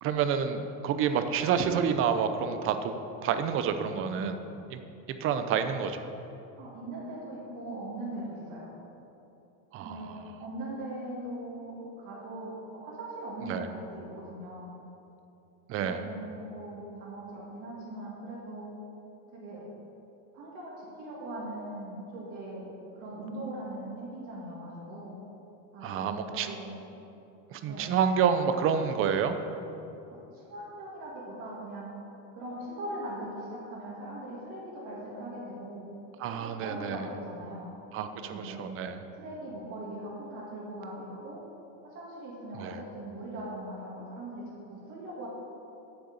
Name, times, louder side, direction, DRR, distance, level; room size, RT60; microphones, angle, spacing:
voice 1, 0.0-2.9 3.2-4.4 4.7-4.8 5.1-6.0 9.7-10.1 13.5-13.7 15.7-16.1 25.8-26.5 27.5-29.4 36.2-37.0 37.9-39.0 42.6-42.8, right 7 dB, 35° right, 9 dB, 0.6 m, -28 dB
voice 2, 6.6-8.7 9.8-14.7 15.8-18.7 19.3-19.6 20.3-25.2 25.7-26.8 27.6-27.9 30.1-31.9 32.3-35.9 36.3-37.7 38.1-38.6 39.1-41.4 41.8-44.4 44.7-45.3, right 1 dB, 50° right, -6 dB, 2.5 m, -40 dB
7.9 x 6.8 x 8.0 m, 2.9 s
cardioid pair, 155°, 39 cm